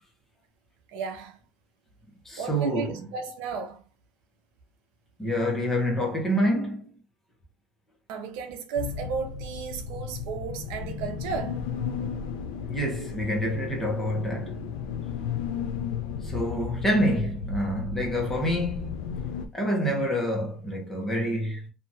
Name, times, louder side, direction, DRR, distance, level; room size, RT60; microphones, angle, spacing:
voice 1, 0.9-1.4 2.4-3.8 8.1-11.6, right 6 dB, 75° right, 0.7 m, -34 dB
voice 2, 2.2-3.1 5.2-6.8 12.7-14.6 16.2-19.1 19.5-21.7, equal, 10° left, 0.8 m, -27 dB
sound 1, 8.8-19.5, left 6 dB, 90° left, 0.5 m, -34 dB
2.8 x 2.3 x 2.7 m
cardioid pair, 145°, 3 cm